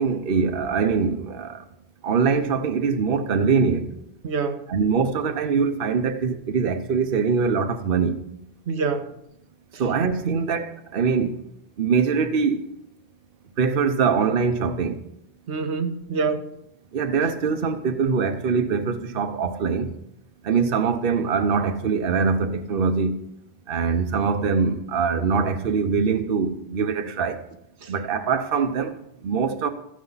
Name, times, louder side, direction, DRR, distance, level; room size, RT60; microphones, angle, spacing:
voice 1, 0.0-1.6 2.0-3.9 4.7-8.2 9.8-11.3 11.8-12.6 13.6-15.0 16.9-19.9 20.4-23.1 23.7-27.5 27.9-29.7, right 5 dB, 60° right, 1.1 m, -23 dB
voice 2, 4.2-4.6 8.7-9.1 10.2-10.3 15.5-16.5 27.8-27.9, right 5 dB, 80° right, 1.2 m, -26 dB
14.5 x 11.0 x 4.0 m
omnidirectional pair, 1.1 m